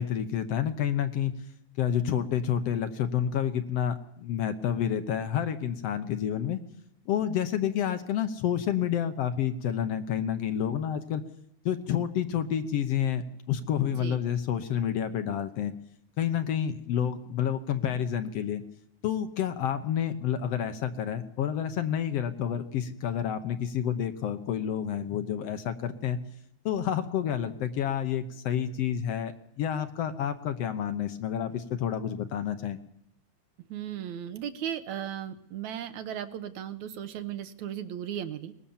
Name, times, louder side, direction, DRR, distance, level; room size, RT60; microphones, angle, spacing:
voice 1, 0.0-1.4 1.8-6.6 7.1-11.2 11.7-15.7 16.2-18.6 19.0-26.2 26.7-32.8, left 9 dB, 65° left, 10 dB, 1.8 m, -29 dB
voice 2, 33.7-38.5, right 10 dB, 75° right, 10 dB, 2.5 m, -36 dB
23.0 x 19.5 x 7.2 m, 0.79 s
omnidirectional pair, 3.3 m